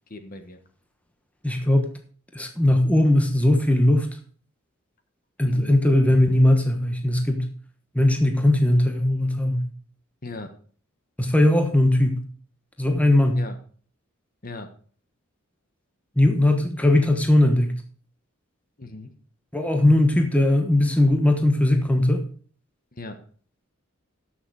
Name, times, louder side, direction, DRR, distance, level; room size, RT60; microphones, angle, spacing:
voice 1, 0.1-0.6 5.5-5.8 10.2-10.5 13.3-13.6 14.4-14.7 18.8-19.2 22.9-23.2, left 2 dB, 40° left, 8 dB, 1.3 m, -38 dB
voice 2, 1.4-1.9 2.3-4.2 5.4-7.5 7.9-9.6 11.2-12.2 12.8-13.4 16.2-17.7 19.5-22.2, left 1 dB, 5° left, 4 dB, 1.0 m, -19 dB
13.5 x 6.4 x 4.7 m, 0.44 s
head